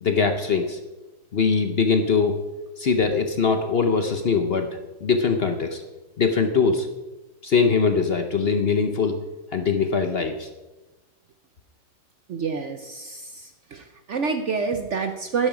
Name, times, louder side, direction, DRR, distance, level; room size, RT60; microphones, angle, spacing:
voice 1, 0.0-0.8 1.3-2.4 2.8-5.8 6.2-6.9 7.4-9.2 9.5-10.5, left 5 dB, 50° left, 6 dB, 0.7 m, -22 dB
voice 2, 12.3-15.5, right 5 dB, 60° right, 7 dB, 0.7 m, -28 dB
11.5 x 11.0 x 4.9 m, 1.1 s
omnidirectional pair, 1.9 m